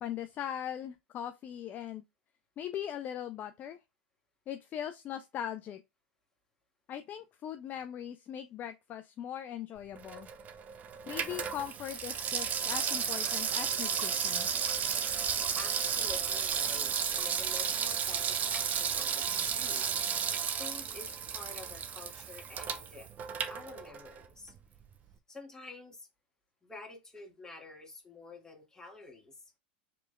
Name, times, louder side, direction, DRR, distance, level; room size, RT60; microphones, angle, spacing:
voice 1, 0.0-2.0 2.6-3.8 4.5-5.8 6.9-10.3 11.1-14.5, left 10 dB, 35° left, 0.4 m, -40 dB
Water tap faucet / Sink (filling or washing), 9.9-24.2 24.6-24.7, right 7 dB, 30° right, 0.6 m, -33 dB
voice 2, 15.5-19.9 20.6-23.1 23.5-24.5 25.3-26.1 26.6-29.5, left 3 dB, 10° left, 1.7 m, -49 dB
4.8 x 3.4 x 2.3 m
hypercardioid pair, 100°, 5 cm